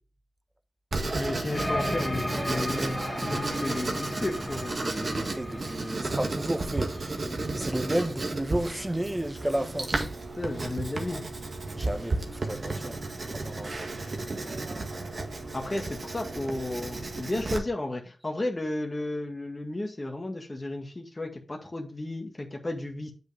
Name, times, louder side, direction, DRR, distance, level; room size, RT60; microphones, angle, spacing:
Writing, 0.9-17.6, right 2 dB, 65° right, 1.9 m, -33 dB
voice 1, 1.1-4.8 10.4-11.2 15.5-23.1, left 2 dB, 35° left, 1.8 m, -33 dB
sound 1, 1.5-8.1, left 1 dB, 15° left, 2.1 m, -36 dB
voice 2, 4.8-6.9 7.5-9.9 11.7-13.0 13.3-13.9, right 1 dB, 15° right, 1.2 m, -32 dB
8.0 x 6.5 x 3.4 m
cardioid pair, 45°, 0 cm